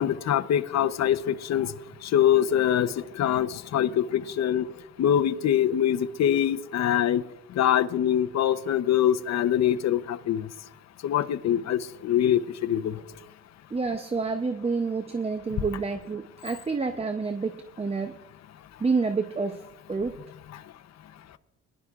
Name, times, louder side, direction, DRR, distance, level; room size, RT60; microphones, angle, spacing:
voice 1, 0.0-1.7 2.1-2.9 3.2-4.6 5.0-7.2 7.6-10.4 11.0-12.9, left 10 dB, 60° left, 11 dB, 0.8 m, -24 dB
voice 2, 13.7-18.1 18.8-19.6 19.9-20.2, right 4 dB, 20° right, 7 dB, 0.7 m, -28 dB
21.5 x 11.5 x 2.4 m, 0.93 s
cardioid pair, 90°, 30 cm